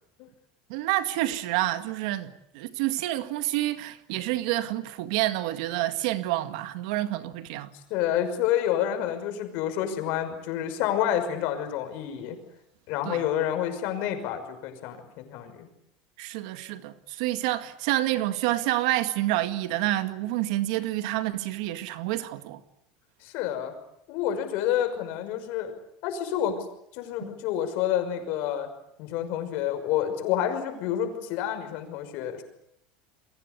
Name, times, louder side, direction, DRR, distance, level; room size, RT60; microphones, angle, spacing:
voice 1, 0.7-7.7 13.0-13.2 16.2-22.6 27.2-27.3, right 15 dB, 70° right, 2.0 m, -28 dB
voice 2, 7.9-12.4 12.9-15.7 23.2-23.7 24.1-25.7 26.0-26.6 26.9-28.7 29.0-32.4, left 10 dB, 55° left, 5.9 m, -28 dB
30.0 x 23.0 x 8.2 m
cardioid pair, 165°, 4 cm